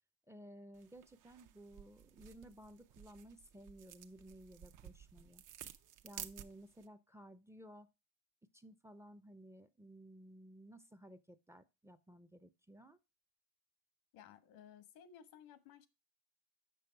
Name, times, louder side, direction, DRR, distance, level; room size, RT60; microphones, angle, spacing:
voice 1, 0.3-5.4 6.0-7.9 8.5-13.0, right 1 dB, 5° right, 0.6 m, -56 dB
sound 1, 0.7-6.9, right 11 dB, 55° right, 0.8 m, -54 dB
voice 2, 14.1-15.9, left 9 dB, 80° left, 1.3 m, -58 dB
7.0 x 6.3 x 4.5 m
cardioid pair, 115°, 37 cm